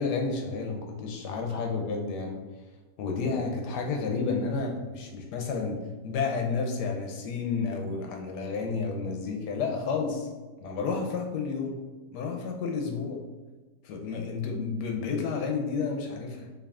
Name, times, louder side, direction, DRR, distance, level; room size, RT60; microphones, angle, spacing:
voice 1, 0.0-2.4 3.0-10.3 10.6-11.8 12.1-13.3 13.8-16.5, left 4 dB, 75° left, 2 dB, 1.1 m, -31 dB
4.6 x 2.9 x 2.3 m, 1.2 s
omnidirectional pair, 1.9 m